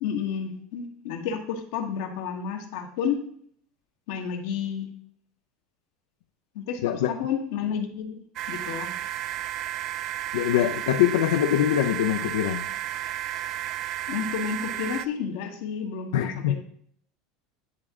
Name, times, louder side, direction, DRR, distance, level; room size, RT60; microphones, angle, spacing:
voice 1, 0.0-3.2 4.1-4.9 6.5-8.9 14.1-16.5, left 7 dB, 75° left, 5 dB, 1.1 m, -31 dB
sound 1, 8.4-15.1, right 13 dB, 50° right, 0.3 m, -32 dB
voice 2, 10.3-12.7 16.1-16.5, left 11 dB, 90° left, 6 dB, 0.4 m, -23 dB
9.8 x 3.6 x 3.6 m, 0.63 s
supercardioid pair, 135°, 0 cm